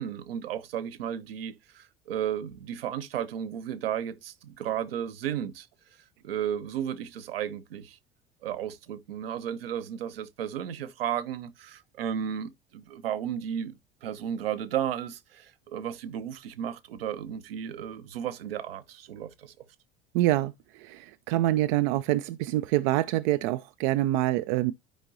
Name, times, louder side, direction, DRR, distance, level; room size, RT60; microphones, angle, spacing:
voice 1, 0.0-5.7 6.2-8.0 8.4-13.7 14.0-19.5, right 9 dB, 70° right, 0.9 m, -34 dB
voice 2, 20.1-24.7, right 16 dB, 55° right, 0.5 m, -26 dB
12.5 x 5.2 x 2.7 m
figure-of-eight pair, 65°, 30 cm